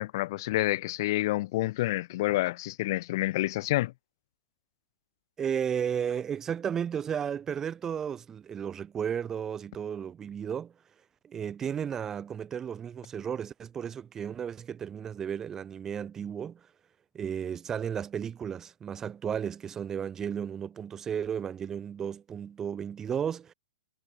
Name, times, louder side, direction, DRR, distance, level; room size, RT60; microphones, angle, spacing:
voice 1, 0.0-3.9, left 17 dB, 45° left, 2.0 m, -28 dB
voice 2, 5.4-10.7 11.2-16.6 17.1-23.5, right 8 dB, 15° right, 5.4 m, -34 dB
hypercardioid pair, 145°, 3 cm